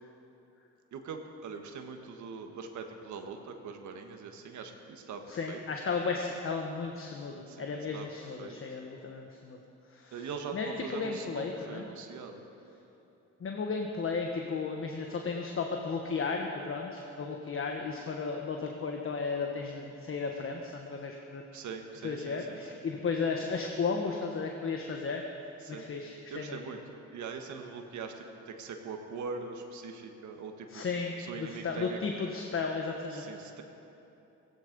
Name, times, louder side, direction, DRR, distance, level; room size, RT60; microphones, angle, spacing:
voice 1, 0.9-5.6 7.5-8.8 10.1-12.4 21.5-22.6 25.6-25.9 26.3-26.8 27.1-30.8 31.2-32.0 33.1-33.6, right 5 dB, 70° right, 4 dB, 1.5 m, -42 dB
voice 2, 5.3-9.6 9.9-11.8 13.4-21.4 22.0-25.2 25.7-26.6 30.7-33.3, left 4 dB, 45° left, 2 dB, 1.3 m, -34 dB
16.0 x 15.5 x 5.3 m, 2.9 s
cardioid pair, 90°, 30 cm